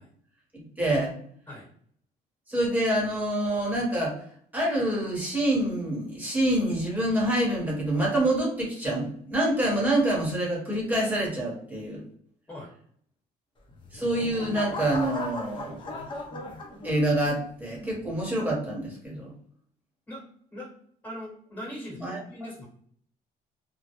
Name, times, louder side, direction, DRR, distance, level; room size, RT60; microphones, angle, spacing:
voice 1, 0.8-1.1 2.5-4.1 4.5-12.0 13.9-15.8 16.8-19.3 22.0-22.2, right 1 dB, 10° right, -4 dB, 1.0 m, -26 dB
sound 1, 13.7-17.3 17.8-18.2, left 2 dB, 30° left, 0.6 m, -37 dB
voice 2, 21.0-22.7, equal, 10° left, -4 dB, 1.2 m, -40 dB
2.1 x 2.0 x 2.8 m, 0.62 s
cardioid pair, 110°, 17 cm